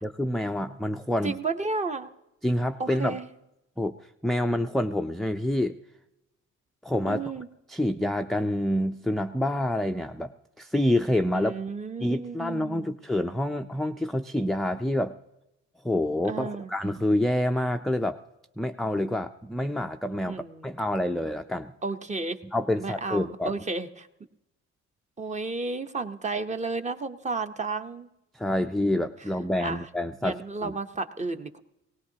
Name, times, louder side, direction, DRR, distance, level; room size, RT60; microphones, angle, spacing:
voice 1, 0.0-1.4 2.4-3.2 3.8-3.9 4.2-5.8 6.8-7.2 7.7-10.3 10.6-11.5 12.0-15.2 15.8-18.2 18.6-21.7 22.5-23.5 28.3-30.8, left 1 dB, ahead, 5 dB, 0.4 m, -27 dB
voice 2, 1.2-2.1 2.8-3.2 7.1-7.5 11.3-12.9 16.3-16.7 20.3-20.7 21.8-22.4 22.8-24.1 25.2-28.1 29.6-29.9 30.2-31.6, right 3 dB, 25° right, 9 dB, 0.8 m, -32 dB
19.5 x 18.0 x 2.8 m, 0.90 s
cardioid pair, 115°, 31 cm